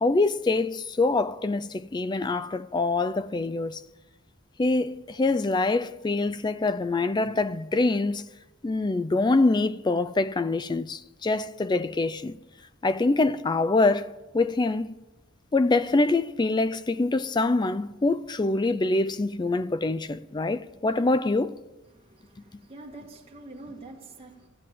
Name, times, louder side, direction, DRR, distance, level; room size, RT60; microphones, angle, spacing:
voice 1, 0.0-3.8 4.6-8.2 8.6-12.4 12.8-15.0 15.5-21.6, left 3 dB, 20° left, 0.4 m, -25 dB
voice 2, 21.9-24.5, right 2 dB, 30° right, 1.7 m, -45 dB
14.5 x 9.2 x 7.5 m
head